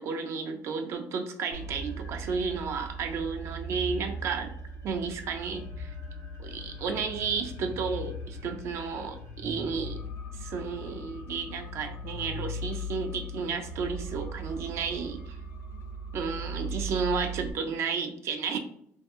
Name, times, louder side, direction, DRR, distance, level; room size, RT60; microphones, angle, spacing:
voice 1, 0.0-4.5 4.8-5.9 6.4-10.0 10.3-15.4 16.1-18.6, right 5 dB, 55° right, 6 dB, 0.4 m, -32 dB
sound 1, 1.5-17.5, right 1 dB, 70° left, 0.8 m, -39 dB
2.7 x 2.3 x 3.5 m, 0.69 s
cardioid pair, 115°, 5 cm